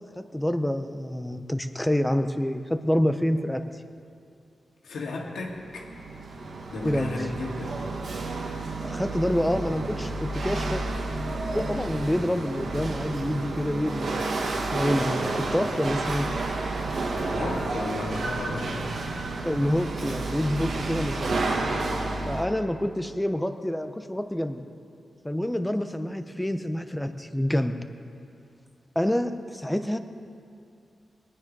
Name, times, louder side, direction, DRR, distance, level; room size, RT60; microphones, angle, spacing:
voice 1, 0.1-3.6 6.8-7.1 8.8-10.8 11.5-14.3 14.7-16.3 19.4-21.3 21.8-22.0 22.3-24.6 25.2-27.8 29.0-30.0, left 1 dB, 5° left, 9 dB, 0.6 m, -27 dB
voice 2, 4.8-5.9 6.7-7.8 17.3-19.2, left 2 dB, 85° left, 0 dB, 2.1 m, -34 dB
Chatter / Hiss / Rattle, 5.5-22.4, right 2 dB, 60° right, 1.5 m, -30 dB
22.0 x 10.0 x 5.4 m, 2.4 s
wide cardioid pair, 175°, 0 cm